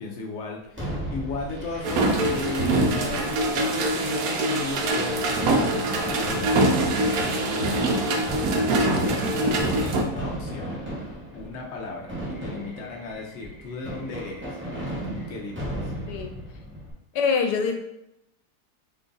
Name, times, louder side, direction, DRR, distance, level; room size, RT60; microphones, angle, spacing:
voice 1, 0.0-14.6 15.0-15.9, left 3 dB, 60° left, -1 dB, 0.8 m, -36 dB
Fireworks, 0.8-16.9, right 1 dB, 10° right, 0.8 m, -36 dB
sound 1, 1.8-10.0, right 2 dB, 70° right, 1.0 m, -24 dB
voice 2, 17.1-17.7, left 5 dB, 90° left, 4 dB, 1.2 m, -24 dB
3.0 x 2.4 x 3.8 m, 0.84 s
omnidirectional pair, 1.7 m